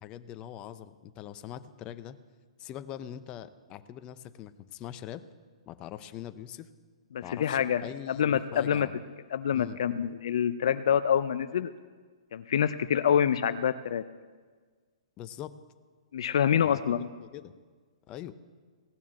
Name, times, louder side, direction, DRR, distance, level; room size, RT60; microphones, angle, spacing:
voice 1, 0.0-2.2 2.6-5.2 5.7-6.7 7.2-9.0 9.5-9.8 15.2-15.6 16.6-17.6 18.1-18.3, left 11 dB, 30° left, 12 dB, 0.7 m, -42 dB
voice 2, 7.1-8.9 9.3-11.7 12.3-14.0 16.1-17.1, left 8 dB, 65° left, 12 dB, 0.5 m, -26 dB
17.0 x 7.1 x 7.1 m, 1.5 s
hypercardioid pair, 120°, 3 cm